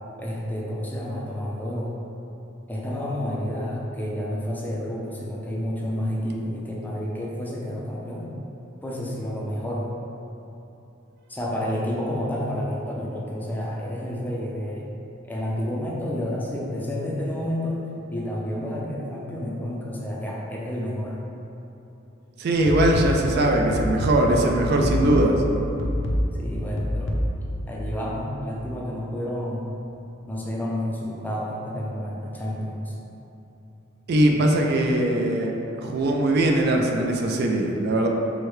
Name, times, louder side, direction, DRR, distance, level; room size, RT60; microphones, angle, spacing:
voice 1, 0.2-1.9 2.7-8.3 8.8-9.9 11.3-14.9 15.3-17.8 18.1-21.2 24.8-25.1 26.3-27.2 27.7-29.7 30.3-33.0, equal, 10° left, -4 dB, 0.4 m, -30 dB
voice 2, 22.4-25.3 34.1-35.5 35.8-38.1, right 1 dB, 55° right, 1 dB, 0.4 m, -21 dB
sound 1, 22.7-27.6, equal, 75° left, 0.5 m, -27 dB
4.6 x 2.1 x 3.2 m, 3.0 s
head